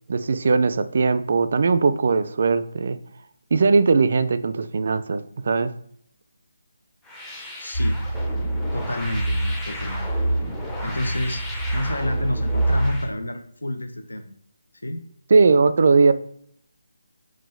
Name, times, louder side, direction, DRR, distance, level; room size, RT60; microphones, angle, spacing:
voice 1, 0.1-3.0 3.5-5.7 15.3-16.1, right 4 dB, 55° right, 12 dB, 0.4 m, -19 dB
sound 1, 7.0-13.1, left 1 dB, 5° left, 0.6 m, -36 dB
voice 2, 7.6-8.0 8.7-10.4 10.8-11.4 11.7-14.3 14.8-15.0, left 1 dB, 90° left, 5 dB, 0.7 m, -29 dB
sound 2, 7.7-13.1, right 1 dB, 65° left, 1.7 m, -26 dB
3.9 x 2.5 x 3.8 m, 0.65 s
figure-of-eight pair, 160°, 0 cm